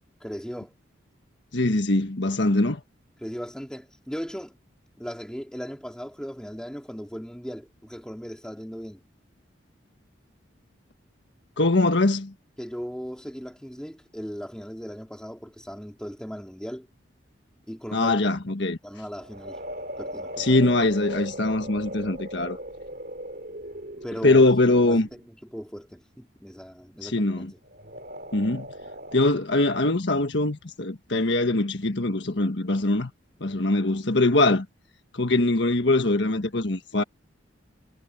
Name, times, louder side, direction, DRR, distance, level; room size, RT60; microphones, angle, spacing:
voice 1, 0.2-0.7 3.2-4.5 5.0-9.0 12.6-16.9 17.7-18.2 18.8-19.6 20.0-20.6 24.0-24.4 24.8-27.6, equal, 5° left, 3.8 m, -37 dB
voice 2, 1.5-2.8 11.6-12.3 17.9-18.8 20.4-22.6 24.2-25.1 27.0-27.5 28.3-28.7 29.1-33.1 33.4-34.6 35.1-37.0, left 2 dB, 65° left, 1.5 m, -22 dB
sound 1, 19.1-25.3 27.6-29.3, equal, 50° right, 3.2 m, -38 dB
head